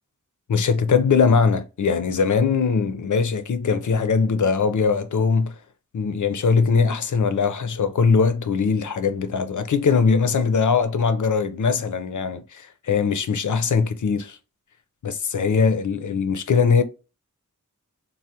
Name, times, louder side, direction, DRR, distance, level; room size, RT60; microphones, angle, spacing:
voice 1, 0.5-5.5 5.9-12.6 12.9-14.4 15.0-16.8, left 5 dB, 65° left, 0.5 m, -21 dB
3.3 x 2.1 x 2.7 m
wide cardioid pair, 40°, 32 cm